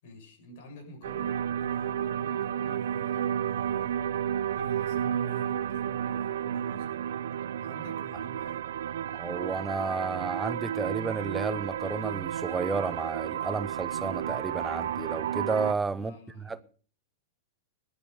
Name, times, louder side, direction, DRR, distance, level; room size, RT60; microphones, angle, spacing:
voice 1, 0.0-4.1 4.5-6.9 7.6-8.7 15.9-16.6, left 1 dB, 50° left, 6.8 m, -49 dB
sound 1, 1.0-15.7, right 9 dB, 85° right, 0.7 m, -32 dB
voice 2, 9.1-16.6, right 4 dB, 10° right, 0.6 m, -32 dB
18.5 x 11.5 x 5.2 m
supercardioid pair, 170°, 0 cm